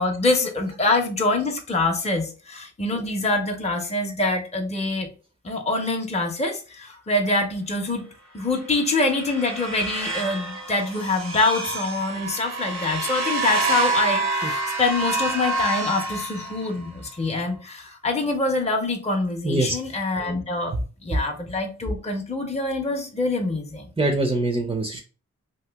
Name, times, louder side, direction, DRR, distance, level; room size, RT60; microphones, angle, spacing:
voice 1, 0.0-5.1 5.4-8.1 8.3-20.7 21.0-23.9, left 2 dB, 20° left, 2 dB, 0.6 m, -25 dB
sound 1, 8.6-16.9, right 3 dB, 65° right, 0.8 m, -28 dB
voice 2, 24.0-25.0, right 2 dB, 15° right, 4 dB, 0.5 m, -23 dB
2.9 x 2.6 x 3.4 m, 0.35 s
wide cardioid pair, 90°, 30 cm